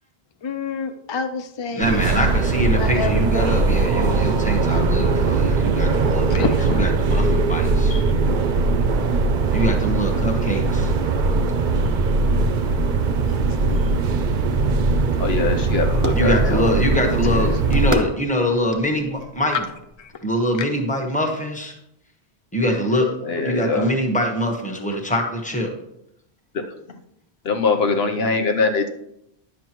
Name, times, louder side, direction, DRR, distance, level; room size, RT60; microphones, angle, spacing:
voice 1, 0.4-2.1 2.8-3.5 6.3-6.9 7.9-8.0 13.3-13.9 20.0-20.1, left 5 dB, 50° left, 6 dB, 0.3 m, -29 dB
voice 2, 1.8-6.4 6.8-7.9 9.5-10.9 16.1-19.6 20.2-21.8 22.5-23.1 23.4-25.7, equal, 5° left, 1 dB, 1.1 m, -24 dB
sound 1, 1.8-17.9, right 3 dB, 55° right, 0.7 m, -20 dB
sound 2, 13.9-20.2, equal, 20° right, 0.7 m, -34 dB
voice 3, 15.2-16.7 17.3-17.4 23.2-23.9 26.5-26.6 27.4-28.9, left 4 dB, 75° left, 5 dB, 1.1 m, -22 dB
10.5 x 7.4 x 3.0 m, 0.81 s
omnidirectional pair, 1.1 m